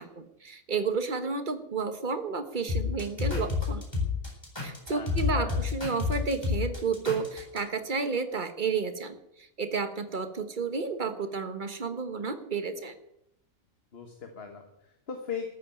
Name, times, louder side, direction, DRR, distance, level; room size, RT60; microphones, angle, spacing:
voice 1, 0.0-3.8 4.6-12.9, right 4 dB, 35° right, 9 dB, 1.3 m, -31 dB
sound 1, 2.7-7.6, left 5 dB, 15° left, 4.3 m, -29 dB
voice 2, 4.9-5.7 13.9-15.6, left 6 dB, 45° left, 4 dB, 1.6 m, -39 dB
13.5 x 8.1 x 9.3 m, 0.80 s
omnidirectional pair, 1.5 m